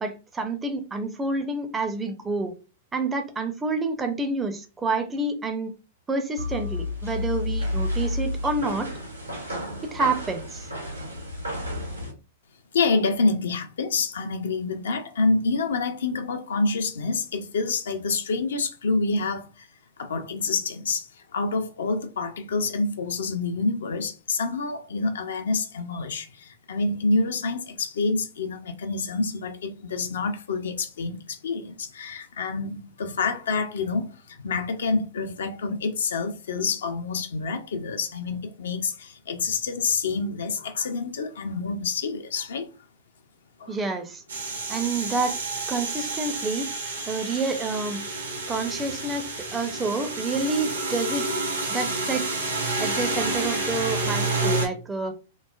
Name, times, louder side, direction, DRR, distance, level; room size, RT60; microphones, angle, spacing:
voice 1, 0.0-2.5 2.9-5.7 6.1-8.9 9.8-10.7 43.7-44.2 44.7-45.3 45.7-46.7 47.1-48.0 48.5-49.3 49.5-51.3 51.7-52.3 52.8-55.1, right 3 dB, 15° right, 0.4 m, -28 dB
sound 1, 6.4-12.1, left 1 dB, 90° right, 1.1 m, -31 dB
voice 2, 12.7-19.7 20.0-42.7 43.6-43.8, left 3 dB, 65° left, 0.4 m, -27 dB
sound 2, 44.3-54.7, right 2 dB, 75° right, 0.7 m, -29 dB
3.0 x 2.0 x 2.3 m
figure-of-eight pair, 100°, 0 cm